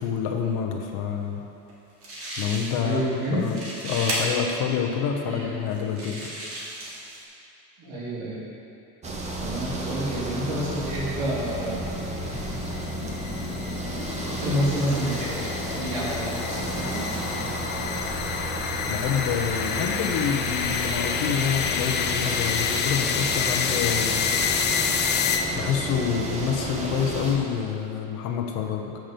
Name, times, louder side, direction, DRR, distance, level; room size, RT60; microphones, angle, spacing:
voice 1, 0.0-1.4 2.4-6.3 18.9-24.3 25.5-29.0, left 7 dB, 70° left, 2 dB, 0.9 m, -27 dB
sound 1, 1.7-1.8 2.0-3.0 3.3-4.2 4.9-5.0 5.7-7.2, right 1 dB, 45° right, 1.9 m, -34 dB
voice 2, 2.8-3.4 5.3-5.5 7.8-8.4 9.4-12.0 14.3-15.5 15.7-17.1, equal, 75° right, -7 dB, 2.4 m, -29 dB
sound 2, 9.0-27.4, right 2 dB, 20° right, 0.9 m, -32 dB
sound 3, 11.2-25.8, left 7 dB, 35° left, 0.4 m, -29 dB
7.6 x 5.9 x 6.8 m, 2.7 s
cardioid pair, 160°, 33 cm